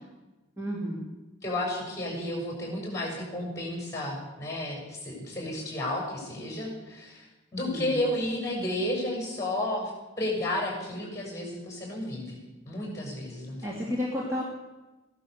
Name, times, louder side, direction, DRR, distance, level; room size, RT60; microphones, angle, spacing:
voice 1, 0.6-1.1 7.6-8.0 13.6-14.4, left 1 dB, 15° right, -4 dB, 2.5 m, -32 dB
voice 2, 1.4-9.9 10.2-12.4 12.7-13.7, left 1 dB, 15° left, -1 dB, 6.3 m, -32 dB
16.0 x 11.5 x 6.8 m, 1.1 s
head